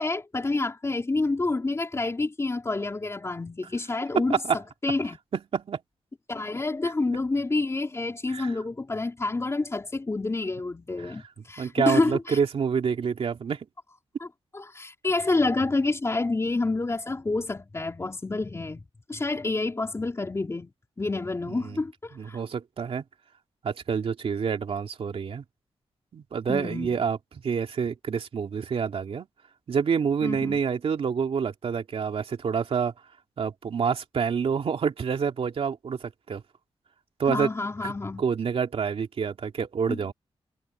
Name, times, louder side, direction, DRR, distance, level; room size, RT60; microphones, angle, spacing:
voice 1, 0.0-5.2 6.3-12.4 14.2-14.3 14.5-20.7 21.0-22.4 26.5-27.0 30.2-30.6 37.3-38.2 39.9-40.0, left 3 dB, 25° left, 3.4 m, -28 dB
voice 2, 5.3-5.8 8.3-8.5 11.0-11.1 11.6-13.7 21.5-21.8 22.1-23.0 23.6-25.4 26.1-27.2 27.4-29.3 29.7-32.9 33.4-36.4 37.2-37.5 37.8-37.9 38.2-40.1, right 6 dB, 65° right, 2.7 m, -27 dB
cardioid pair, 95°, 10 cm